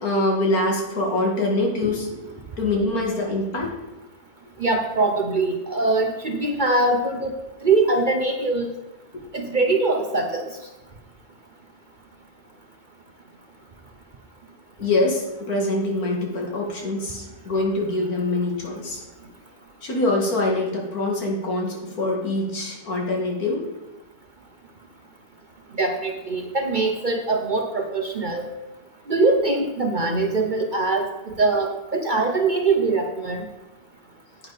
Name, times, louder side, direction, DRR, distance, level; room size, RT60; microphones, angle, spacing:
voice 1, 0.0-3.7 9.1-9.3 14.8-19.0 19.8-23.6, left 2 dB, 85° left, -1 dB, 2.4 m, -24 dB
voice 2, 4.6-7.3 7.6-8.7 9.3-10.4 25.7-28.5 29.1-33.5, right 3 dB, 40° right, 4 dB, 0.7 m, -22 dB
9.9 x 8.6 x 4.1 m, 1.1 s
omnidirectional pair, 1.5 m